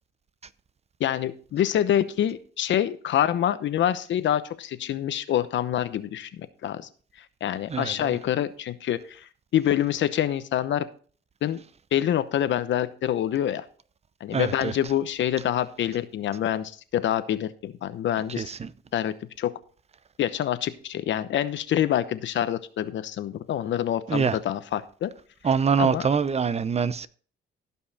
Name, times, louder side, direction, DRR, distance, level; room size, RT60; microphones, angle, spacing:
voice 1, 1.0-6.8 7.4-10.9 11.4-11.6 11.9-13.6 14.2-18.5 18.9-19.5 20.2-25.1 25.8-26.1, left 11 dB, 70° left, 0.9 m, -26 dB
voice 2, 14.3-14.7 18.4-18.7 24.1-24.3 25.4-27.1, right 6 dB, 35° right, 0.7 m, -24 dB
16.0 x 5.6 x 4.2 m
cardioid pair, 90°, 20 cm